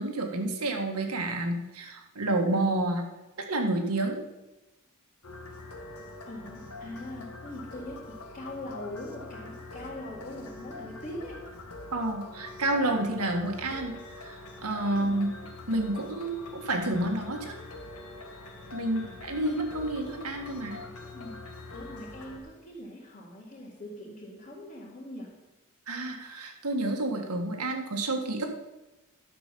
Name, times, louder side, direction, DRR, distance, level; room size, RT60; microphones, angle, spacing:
voice 1, 0.0-3.0 3.4-4.2 11.9-15.3 15.7-17.6 18.7-20.8 25.9-28.5, right 2 dB, 85° right, 3 dB, 1.6 m, -29 dB
sound 1, 5.2-22.4, left 2 dB, 75° left, 1.4 m, -44 dB
voice 2, 6.3-11.4 14.9-15.2 18.8-19.1 19.5-19.6 21.1-25.4, left 1 dB, 35° left, -7 dB, 2.2 m, -42 dB
11.5 x 6.1 x 6.8 m, 1.0 s
head